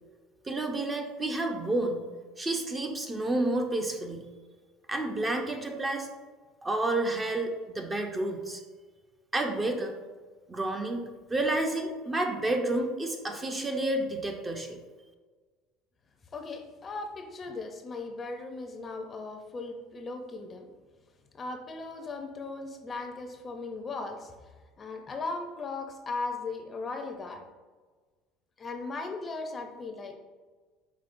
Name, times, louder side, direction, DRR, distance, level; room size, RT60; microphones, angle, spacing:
voice 1, 0.4-2.1 2.4-4.3 4.9-6.1 6.6-8.6 9.3-9.9 10.5-11.0 11.3-14.8, right 2 dB, 20° right, 3 dB, 0.5 m, -30 dB
voice 2, 16.3-20.7 21.3-24.3 24.8-27.4 28.6-30.1, left 3 dB, 30° left, 5 dB, 0.5 m, -37 dB
5.1 x 3.6 x 2.5 m, 1.4 s
supercardioid pair, 115°, 0 cm